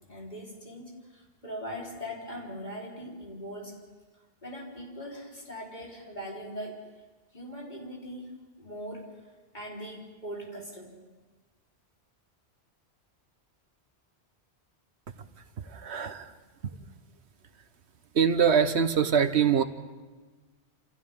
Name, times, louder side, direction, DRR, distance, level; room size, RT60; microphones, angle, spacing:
voice 1, 0.1-3.8 4.4-6.8 7.3-9.1 9.5-10.9, equal, 45° left, -3 dB, 4.5 m, -40 dB
voice 2, 15.6-16.3 18.1-19.6, right 7 dB, 85° right, 10 dB, 1.3 m, -24 dB
29.0 x 28.5 x 3.8 m, 1.3 s
omnidirectional pair, 1.1 m